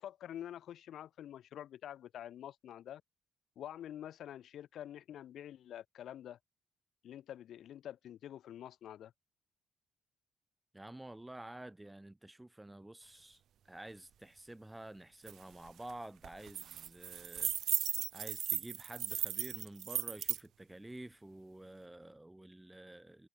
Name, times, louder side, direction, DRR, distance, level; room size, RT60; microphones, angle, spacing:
voice 1, 0.0-3.0 3.6-6.4 7.0-9.1, left 11 dB, 70° left, 1.5 m, -47 dB
voice 2, 10.7-23.3, right 1 dB, 10° right, 0.5 m, -50 dB
sound 1, 15.3-15.4 15.7-15.9 16.2-20.4, right 10 dB, 70° right, 0.3 m, -36 dB
cardioid pair, 90°, 0 cm